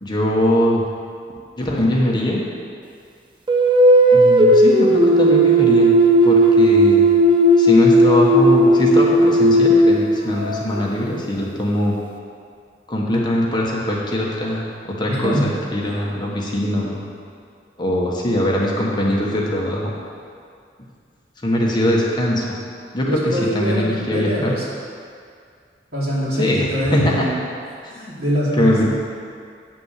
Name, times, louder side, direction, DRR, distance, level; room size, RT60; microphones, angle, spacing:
voice 1, 0.0-0.8 1.6-2.4 4.1-5.9 6.2-7.1 7.6-12.0 12.9-17.0 17.8-19.9 21.4-22.4 22.9-24.5 26.3-27.3 28.6-28.8, equal, 25° left, -3 dB, 1.3 m, -21 dB
sound 1, 3.5-10.8, right 1 dB, 30° right, 0.8 m, -14 dB
voice 2, 15.1-15.5 16.2-16.3 23.0-24.6 25.9-27.4 27.9-28.8, equal, 65° right, -7 dB, 2.8 m, -23 dB
9.6 x 6.0 x 6.7 m, 2.2 s
head